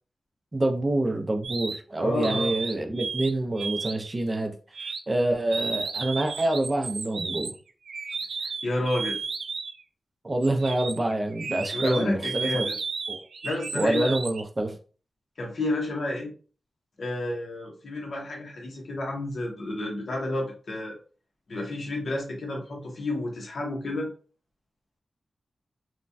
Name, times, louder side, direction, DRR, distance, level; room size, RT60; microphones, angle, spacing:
voice 1, 0.5-4.5 5.1-7.5 10.2-12.7 13.1-13.3 13.7-14.8, right 1 dB, 25° right, 4 dB, 0.5 m, -26 dB
sound 1, 1.4-1.8 2.2-3.3 3.6-4.1 4.7-5.0 5.5-9.8 10.4-14.4, right 5 dB, 85° right, 0.3 m, -33 dB
voice 2, 2.0-2.5 8.4-9.2 11.7-12.7 13.4-14.1 15.4-16.3 17.0-21.0 21.5-24.1, left 2 dB, 65° left, -1 dB, 0.8 m, -30 dB
3.1 x 2.2 x 2.6 m, 0.38 s
wide cardioid pair, 115°, 0 cm